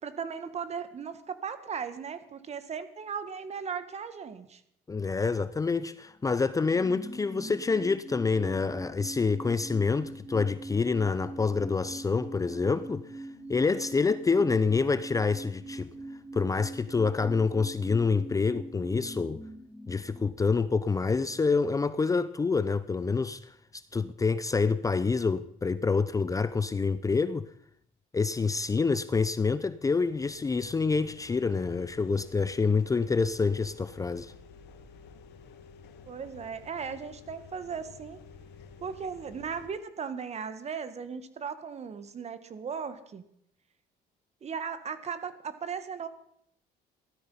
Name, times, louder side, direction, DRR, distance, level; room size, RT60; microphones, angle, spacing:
voice 1, 0.0-4.6 36.1-38.2 38.8-43.2 44.4-46.1, right 6 dB, 40° right, 1.6 m, -37 dB
voice 2, 4.9-13.2 13.5-15.9 16.3-19.4 19.9-27.5 28.1-34.3, left 4 dB, 20° left, 0.6 m, -27 dB
sound 1, 6.1-21.4 21.7-21.8, right 2 dB, 5° right, 5.4 m, -43 dB
sound 2, 29.9-39.7, left 5 dB, 80° left, 2.0 m, -51 dB
16.0 x 13.0 x 5.7 m
cardioid pair, 110°, 17 cm